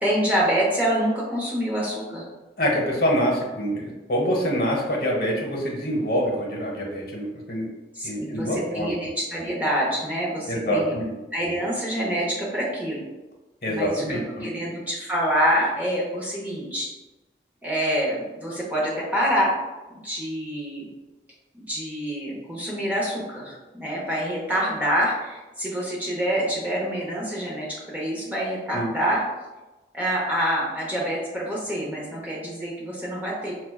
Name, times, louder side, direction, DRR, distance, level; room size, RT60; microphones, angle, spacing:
voice 1, 0.0-2.3 7.9-10.9 11.3-13.0 13.7-16.9 17.6-19.5 20.0-20.8 21.7-29.2 29.9-33.5, equal, 10° right, -5 dB, 0.8 m, -26 dB
voice 2, 2.6-7.7 8.0-8.9 10.5-11.0 13.6-14.5 28.7-28.9, equal, 55° left, -2 dB, 0.9 m, -25 dB
5.9 x 2.2 x 2.2 m, 1.1 s
head